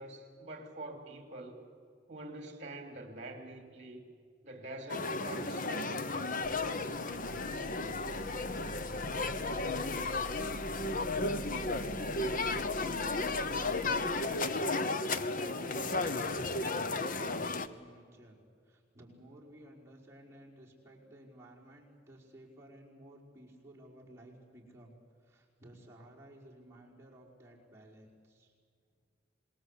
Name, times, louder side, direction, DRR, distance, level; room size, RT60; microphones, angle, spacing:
voice 1, 0.0-1.6 2.1-4.0 4.4-6.4, right 1 dB, 40° right, 5 dB, 3.2 m, -45 dB
sound 1, 4.9-17.7, left 3 dB, 45° left, 1.0 m, -34 dB
sound 2, 6.4-14.6, right 1 dB, 70° right, 1.3 m, -48 dB
voice 2, 8.1-10.1 11.1-18.4 18.6-28.5, right 1 dB, 15° right, -5 dB, 5.1 m, -55 dB
26.5 x 21.5 x 8.4 m, 2.1 s
head